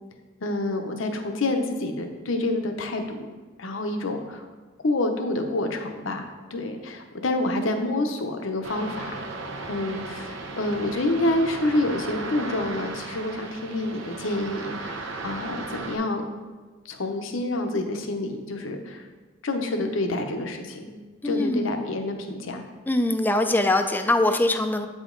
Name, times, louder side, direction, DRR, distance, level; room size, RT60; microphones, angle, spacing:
voice 1, 0.4-3.3 3.6-4.5 4.8-9.2 9.7-16.2 16.8-19.0 19.4-21.0 21.2-22.6, left 2 dB, 75° left, 5 dB, 0.8 m, -28 dB
sound 1, 8.6-16.0, right 3 dB, 70° right, 0.8 m, -36 dB
voice 2, 21.2-21.7 22.9-24.9, left 2 dB, 10° left, 7 dB, 0.4 m, -22 dB
8.2 x 5.1 x 3.8 m, 1.3 s
head